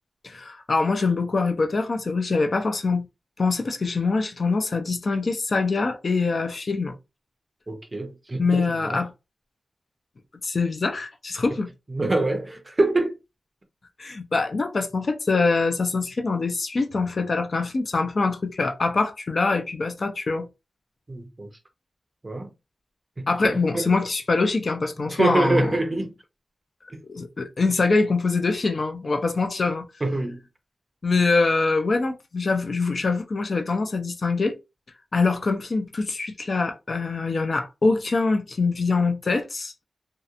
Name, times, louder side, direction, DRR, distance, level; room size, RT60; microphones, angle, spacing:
voice 1, 0.2-3.0 3.4-6.9 8.4-9.1 10.4-11.7 14.0-20.5 23.3-25.8 27.0-29.9 31.0-34.5 35.1-39.8, left 3 dB, 45° left, 0.4 m, -24 dB
voice 2, 7.7-9.0 11.9-13.1 21.1-21.5 22.2-22.5 23.2-23.9 25.0-26.1 30.0-30.4, right 2 dB, 25° right, 0.5 m, -25 dB
2.8 x 2.1 x 2.4 m
wide cardioid pair, 155°, 0 cm